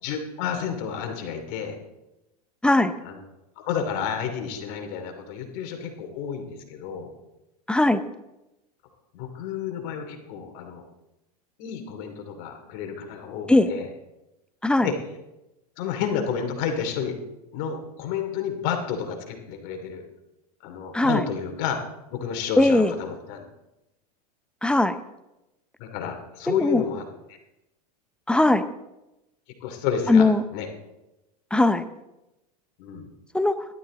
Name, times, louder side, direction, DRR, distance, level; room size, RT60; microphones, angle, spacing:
voice 1, 0.0-1.8 3.0-3.2 3.6-7.1 9.1-10.8 11.6-13.9 14.8-15.0 15.8-17.2 17.5-20.0 20.6-21.8 22.1-23.4 25.8-27.0 29.6-30.7 32.8-33.1, left 7 dB, 55° left, 5 dB, 2.7 m, -30 dB
voice 2, 2.6-2.9 7.7-8.0 13.5-13.7 14.6-14.9 20.9-21.2 22.6-22.9 24.6-24.9 26.5-26.8 28.3-28.6 30.1-30.4 31.5-31.8 33.3-33.6, left 2 dB, 5° left, 11 dB, 0.7 m, -19 dB
15.5 x 12.0 x 3.8 m, 0.93 s
hypercardioid pair, 110°, 20 cm